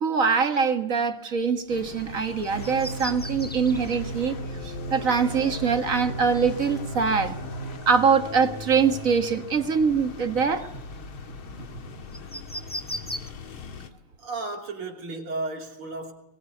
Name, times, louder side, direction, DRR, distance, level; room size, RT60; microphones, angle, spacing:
voice 1, 0.0-4.4 4.9-7.4 7.9-10.7, right 5 dB, 40° right, 8 dB, 1.7 m, -23 dB
sound 1, 1.5-1.8 2.2-4.0 5.7-5.8 7.7-8.2 8.5-9.0 9.5-9.7 10.0-11.0 12.1-13.3, equal, 10° left, 0.7 m, -38 dB
sound 2, 1.7-13.9, left 4 dB, 70° left, 2.6 m, -40 dB
sound 3, 2.5-7.8, right 1 dB, 40° left, 2.0 m, -36 dB
voice 2, 14.2-16.1, right 3 dB, 75° right, 3 dB, 4.1 m, -33 dB
23.5 x 23.0 x 8.3 m, 0.89 s
omnidirectional pair, 2.4 m